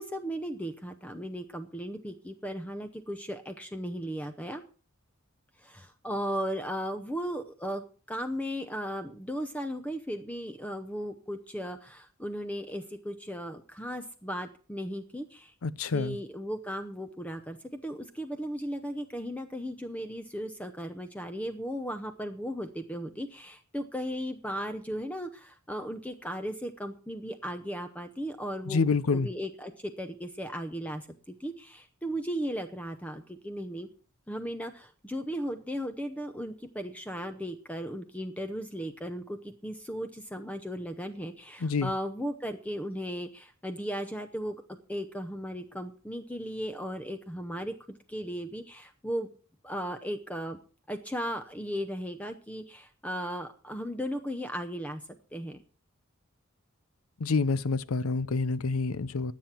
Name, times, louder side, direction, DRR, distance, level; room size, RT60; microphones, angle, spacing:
voice 1, 0.0-4.6 5.6-7.8 8.1-15.5 15.9-28.8 29.1-33.9 34.3-49.3 49.6-50.6 50.9-55.0 55.3-55.6, equal, 5° left, 0.7 m, -36 dB
voice 2, 15.6-16.2 28.7-29.3 41.6-41.9 57.2-59.3, left 4 dB, 90° left, 0.6 m, -27 dB
20.5 x 7.5 x 4.3 m
head